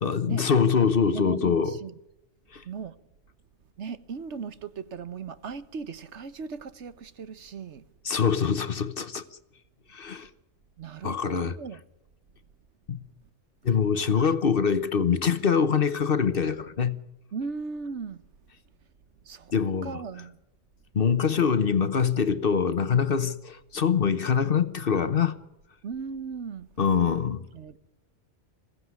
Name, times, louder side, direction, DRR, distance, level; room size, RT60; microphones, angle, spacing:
voice 1, 0.0-1.8 2.5-2.6 8.0-9.2 9.9-10.3 11.0-11.5 12.9-13.0 13.6-17.0 19.5-20.0 20.9-25.4 26.8-27.5, left 6 dB, 50° left, 1.1 m, -24 dB
voice 2, 1.1-2.0 2.6-3.0 3.8-7.8 10.8-11.8 14.1-14.3 17.3-18.2 19.2-19.5 19.8-20.4 25.8-26.7 27.5-27.8, right 5 dB, 70° right, 1.3 m, -37 dB
22.0 x 16.0 x 9.6 m
omnidirectional pair, 1.3 m